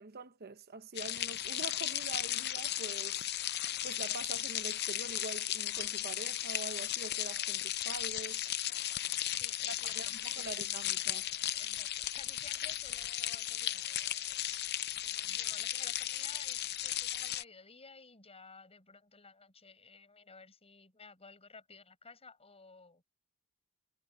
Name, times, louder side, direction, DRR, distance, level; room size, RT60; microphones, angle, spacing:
voice 1, 0.0-3.3 3.8-8.4 9.7-11.3, right 3 dB, 45° right, 0.8 m, -45 dB
sound 1, 1.0-17.4, left 13 dB, 50° left, 0.6 m, -36 dB
sound 2, 6.8-7.6 8.4-9.0 9.8-10.4 11.0-11.6 12.5-13.1 13.8-14.4 15.2-15.3 15.7-16.3, right 4 dB, 25° right, 6.7 m, -67 dB
voice 2, 9.3-10.5 11.6-11.9 12.1-14.3 14.9-23.0, left 4 dB, 30° left, 7.0 m, -55 dB
head